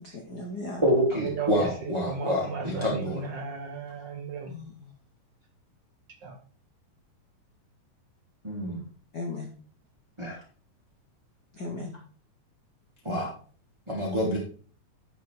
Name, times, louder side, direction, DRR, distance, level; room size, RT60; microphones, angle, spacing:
voice 1, 0.0-0.8 4.5-4.9 9.1-9.5 11.5-12.0, left 2 dB, 55° left, 1.2 m, -37 dB
voice 2, 0.8-3.2 8.4-8.8 10.2-10.3 13.1-13.3 13.9-14.4, equal, 10° right, 2.1 m, -27 dB
voice 3, 2.1-4.5 6.2-6.3, right 4 dB, 60° right, 1.1 m, -35 dB
11.5 x 5.5 x 4.7 m
omnidirectional pair, 3.7 m